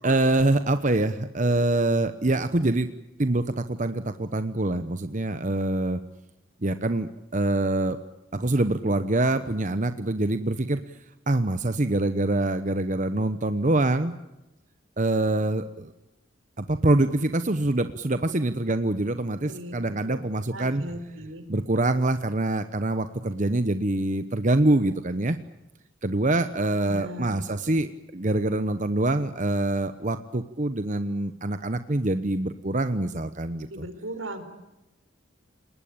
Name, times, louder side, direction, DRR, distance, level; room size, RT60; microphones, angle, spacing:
voice 1, 0.0-2.9 3.2-6.0 6.6-8.0 8.3-10.8 11.3-14.2 15.0-15.9 16.6-20.8 21.5-25.4 26.0-33.8, right 2 dB, 40° right, 10 dB, 1.0 m, -25 dB
voice 2, 19.4-20.2 20.5-21.4 26.9-27.3 33.6-34.4, right 1 dB, 80° right, 8 dB, 4.8 m, -37 dB
30.0 x 20.0 x 8.7 m, 0.94 s
head